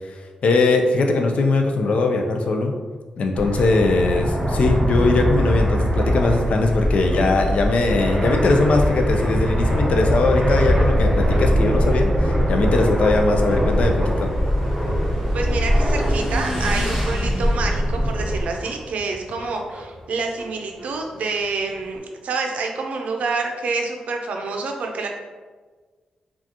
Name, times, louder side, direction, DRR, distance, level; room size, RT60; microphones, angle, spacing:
voice 1, 0.4-2.7 3.2-14.3, left 3 dB, 60° left, 3 dB, 0.4 m, -20 dB
Fixed-wing aircraft airplane, 3.3-18.5, equal, 15° right, 0.7 m, -21 dB
Motorcycle / Engine, 12.8-22.0, equal, 5° left, 1.4 m, -36 dB
voice 2, 15.3-25.1, right 3 dB, 75° right, 2 dB, 0.5 m, -27 dB
4.8 x 2.4 x 2.8 m, 1.4 s
wide cardioid pair, 150°, 2 cm